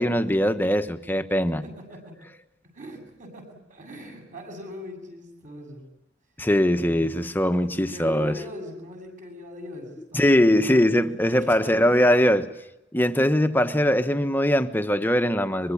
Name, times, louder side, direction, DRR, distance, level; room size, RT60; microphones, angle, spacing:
voice 1, 0.0-1.6 6.4-8.4 10.1-12.4 12.9-15.7, equal, 10° left, 1.2 m, -21 dB
voice 2, 1.6-2.1 2.7-5.8 6.7-7.2 7.5-11.9 12.2-12.3, left 1 dB, 45° right, 7.9 m, -41 dB
23.5 x 23.0 x 8.7 m
head